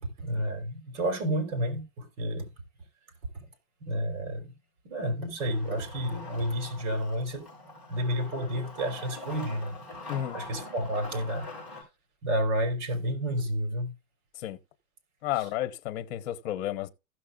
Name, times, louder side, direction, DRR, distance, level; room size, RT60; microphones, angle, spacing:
voice 1, 0.0-2.5 3.3-3.5 3.8-4.5 4.8-7.5 7.9-9.8 10.3-11.5 12.2-13.9 15.4-15.5, equal, 55° right, 3.8 m, -30 dB
Wood, 5.4-11.8, left 2 dB, ahead, 5.4 m, -44 dB
voice 2, 15.2-16.9, left 12 dB, 50° left, 1.2 m, -32 dB
16.0 x 6.5 x 2.4 m
supercardioid pair, 175°, 42 cm